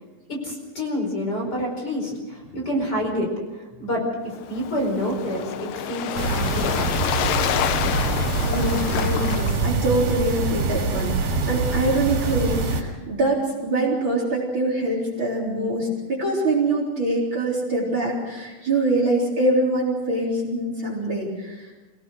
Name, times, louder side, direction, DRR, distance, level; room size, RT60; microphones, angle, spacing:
voice 1, 0.3-7.0, equal, 30° left, 0 dB, 5.3 m, -28 dB
Waves surf, 4.3-10.0, left 10 dB, 90° left, 2.6 m, -28 dB
sound 1, 6.2-12.8, right 3 dB, 70° right, 4.7 m, -24 dB
voice 2, 8.4-21.7, right 2 dB, 35° right, -1 dB, 4.4 m, -24 dB
26.0 x 18.0 x 6.5 m, 1.2 s
omnidirectional pair, 3.8 m